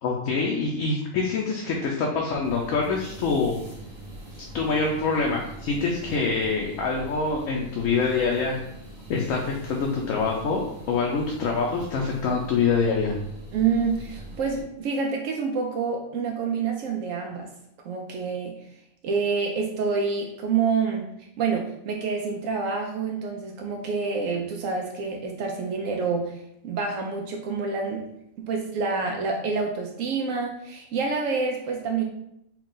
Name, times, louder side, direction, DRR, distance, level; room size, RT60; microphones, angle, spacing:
voice 1, 0.0-3.6 4.5-8.6 9.1-13.2, left 4 dB, 80° left, -1 dB, 1.0 m, -25 dB
sound 1, 2.4-14.6, right 1 dB, 40° right, 1.2 m, -43 dB
voice 2, 13.5-17.5 17.8-18.6 19.0-21.1 21.4-28.0 28.4-32.0, right 5 dB, 80° right, 1 dB, 0.9 m, -27 dB
4.6 x 2.3 x 3.8 m, 0.79 s
omnidirectional pair, 1.4 m